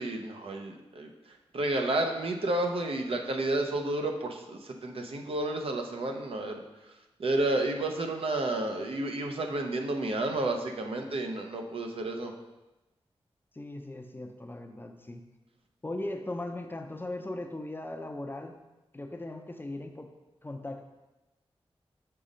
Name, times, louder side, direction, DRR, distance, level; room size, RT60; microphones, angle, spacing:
voice 1, 0.0-6.6 7.2-12.3, right 2 dB, 65° right, 3 dB, 0.7 m, -31 dB
voice 2, 13.5-15.2 15.8-18.5 18.9-20.1 20.4-20.8, left 1 dB, 20° left, 5 dB, 0.6 m, -38 dB
5.7 x 4.0 x 5.1 m, 1.0 s
wide cardioid pair, 80°, 10 cm